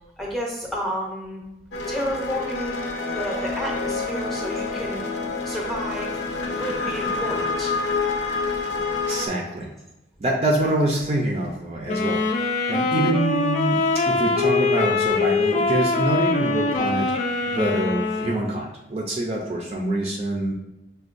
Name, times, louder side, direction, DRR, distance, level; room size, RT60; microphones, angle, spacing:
voice 1, 0.2-1.4 1.9-2.8 3.1-5.1 5.4-6.2 6.5-7.7, equal, ahead, -3 dB, 0.7 m, -30 dB
sound 1, 1.7-9.3, left 4 dB, 80° left, 0.6 m, -28 dB
voice 2, 9.1-9.7 10.2-13.8 14.1-17.2 17.5-20.5, right 1 dB, 35° right, -1 dB, 0.4 m, -25 dB
sound 2, 11.9-18.4, left 3 dB, 40° left, 0.3 m, -23 dB
6.6 x 2.2 x 2.5 m, 0.95 s
head